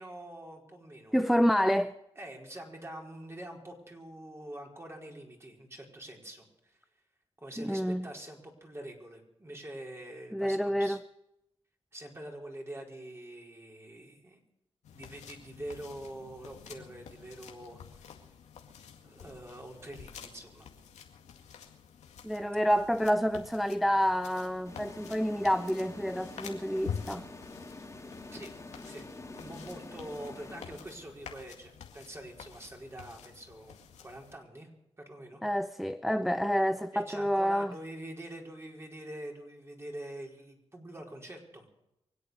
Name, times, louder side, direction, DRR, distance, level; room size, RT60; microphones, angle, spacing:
voice 1, 0.0-1.2 2.2-6.8 7.4-11.0 11.9-14.4 14.9-18.1 19.0-20.7 28.3-28.5 28.8-34.7 35.0-35.4 36.9-41.7, right 1 dB, 20° right, 4.8 m, -45 dB
voice 2, 1.1-1.9 7.6-8.1 10.3-11.0 22.2-27.2 35.4-37.7, equal, ahead, 0.6 m, -28 dB
sound 1, 14.8-34.4, left 7 dB, 85° left, 2.1 m, -48 dB
sound 2, 24.7-31.3, left 2 dB, 25° left, 2.7 m, -47 dB
24.5 x 8.5 x 6.5 m
cardioid pair, 60°, 12 cm